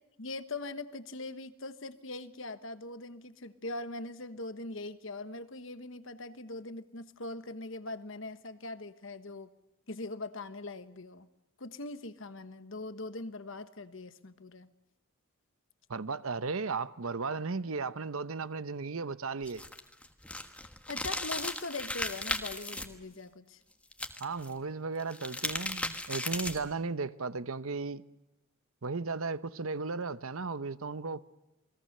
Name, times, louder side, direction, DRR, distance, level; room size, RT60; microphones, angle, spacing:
voice 1, 0.2-9.5 9.9-11.3 11.6-14.7 20.9-23.6, left 2 dB, 60° left, 1.3 m, -41 dB
voice 2, 15.9-19.6 24.2-28.0 28.8-31.3, right 4 dB, 75° right, 0.8 m, -35 dB
sound 1, 19.4-22.8 23.9-24.5 25.0-26.7, left 2 dB, 5° left, 1.3 m, -36 dB
28.5 x 21.0 x 6.7 m
head